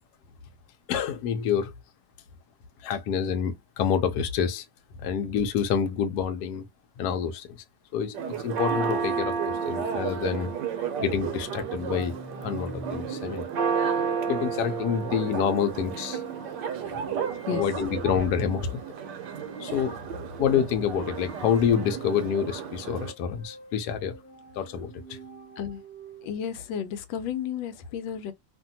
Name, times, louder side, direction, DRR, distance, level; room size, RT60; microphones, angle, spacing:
voice 1, 0.9-1.7 2.8-4.6 5.0-6.7 7.0-7.6 7.9-10.5 11.0-12.1 12.4-13.4 14.3-16.2 16.8-17.0 17.5-18.8 19.6-20.0 20.4-24.1 24.6-25.2, left 8 dB, 70° left, 1.0 m, -27 dB
Church bell, 8.1-23.1, right 6 dB, 70° right, 1.1 m, -32 dB
sound 1, 11.4-22.3 22.5-26.5, right 2 dB, 10° left, 1.3 m, -46 dB
voice 2, 26.2-28.3, left 8 dB, 85° left, 1.3 m, -32 dB
2.8 x 2.6 x 2.7 m
omnidirectional pair, 2.0 m